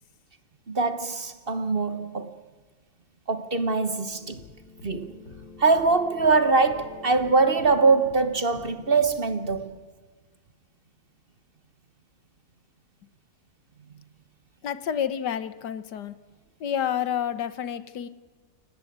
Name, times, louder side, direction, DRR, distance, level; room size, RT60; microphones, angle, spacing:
voice 1, 0.7-2.4 3.3-4.4 4.8-5.2 5.6-9.8, right 4 dB, 35° right, 1.4 m, -23 dB
sound 1, 4.0-9.6, left 4 dB, 65° left, 4.8 m, -46 dB
voice 2, 14.6-16.2 16.6-18.1, left 9 dB, 90° left, 1.7 m, -29 dB
29.0 x 18.0 x 9.4 m
omnidirectional pair, 1.8 m